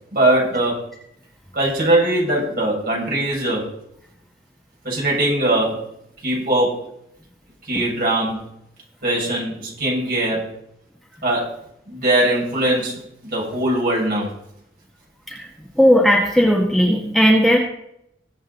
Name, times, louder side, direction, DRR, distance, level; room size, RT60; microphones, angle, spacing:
voice 1, 0.1-0.8 1.5-3.6 4.8-5.8 6.2-6.8 7.6-8.4 9.0-10.5 11.2-11.5 11.9-14.3, right 1 dB, 55° right, -3 dB, 6.5 m, -21 dB
voice 2, 15.8-17.6, equal, ahead, -3 dB, 1.8 m, -16 dB
21.0 x 8.1 x 4.1 m, 0.76 s
head